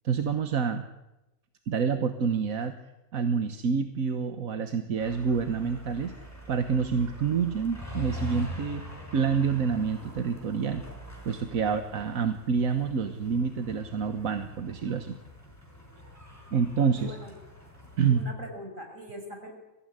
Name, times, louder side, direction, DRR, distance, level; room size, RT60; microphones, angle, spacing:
voice 1, 0.0-0.8 1.7-2.7 3.1-6.1 6.5-8.8 9.1-10.8 11.2-15.2 16.5-17.1 18.0-18.2, right 6 dB, 90° right, 7 dB, 1.7 m, -27 dB
sound 1, 5.0-18.2, equal, 10° left, 5.8 m, -43 dB
voice 2, 17.0-17.3 18.0-19.5, equal, 70° right, 3 dB, 6.4 m, -42 dB
24.0 x 16.0 x 9.8 m, 0.99 s
omnidirectional pair, 1.4 m